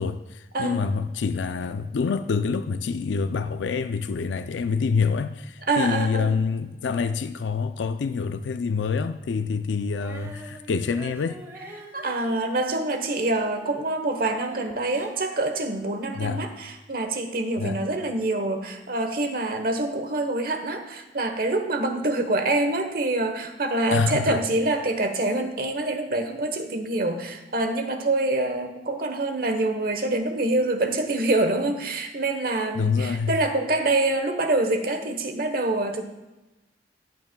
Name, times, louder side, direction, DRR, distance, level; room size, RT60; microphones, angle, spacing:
voice 1, 0.0-11.4 16.1-16.4 17.6-17.8 23.9-24.4 32.8-33.3, left 5 dB, 80° left, 0.4 m, -26 dB
voice 2, 0.5-0.9 5.7-6.3 11.9-36.0, right 2 dB, 50° right, 1.0 m, -26 dB
Female singing, 9.9-13.8 14.0-16.2, right 1 dB, 15° right, 1.2 m, -46 dB
14.0 x 9.1 x 2.2 m
head